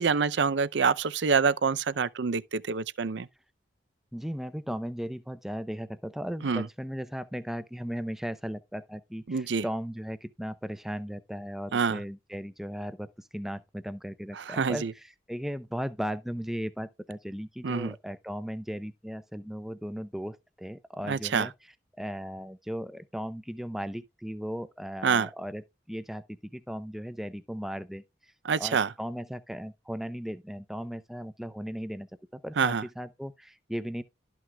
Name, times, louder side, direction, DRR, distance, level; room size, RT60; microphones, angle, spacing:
voice 1, 0.0-3.3 6.4-6.7 9.3-9.6 11.7-12.0 14.3-14.9 17.6-17.9 21.1-21.5 25.0-25.3 28.4-28.9 32.6-32.8, right 5 dB, 65° right, 0.5 m, -26 dB
voice 2, 4.1-14.8 15.3-21.5 22.0-25.6 25.9-28.0 28.6-34.0, equal, ahead, 0.6 m, -36 dB
12.5 x 6.0 x 2.3 m
head